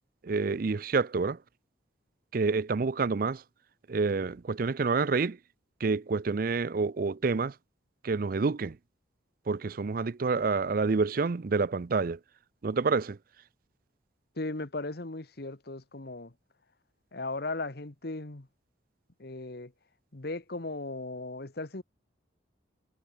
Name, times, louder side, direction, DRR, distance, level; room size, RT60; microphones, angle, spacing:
voice 1, 0.2-1.4 2.3-3.4 3.9-5.4 5.8-7.5 8.0-8.8 9.5-12.2 12.6-13.2, right 4 dB, 50° right, 0.5 m, -28 dB
voice 2, 14.4-16.3 17.1-18.5 19.2-19.7 20.1-21.8, left 2 dB, 55° left, 1.4 m, -37 dB
head